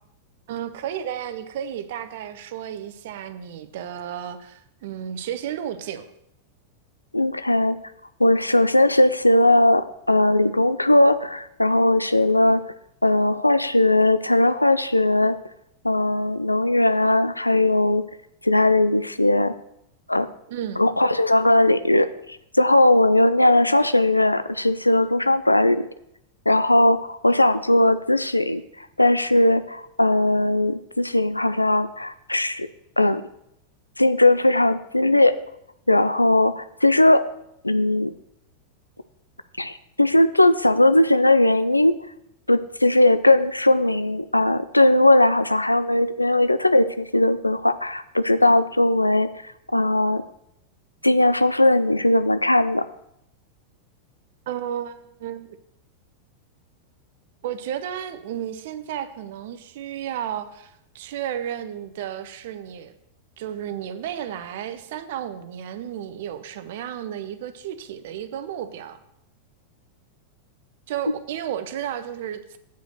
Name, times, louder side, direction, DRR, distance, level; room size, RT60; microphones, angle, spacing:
voice 1, 0.5-6.1 20.5-20.8 54.5-55.6 57.4-63.0 63.4-69.0 70.9-72.6, right 10 dB, 55° right, 11 dB, 0.7 m, -33 dB
voice 2, 7.1-7.8 8.2-12.6 13.0-15.4 15.8-18.0 18.4-19.5 20.1-20.3 20.8-25.9 26.5-32.7 33.0-33.2 34.0-35.4 35.9-37.3 37.6-38.1 39.6-41.9 42.5-49.3 49.7-50.2 51.0-52.8, left 1 dB, 85° left, 13 dB, 0.4 m, -19 dB
7.9 x 4.9 x 6.4 m, 0.77 s
figure-of-eight pair, 90°, 0 cm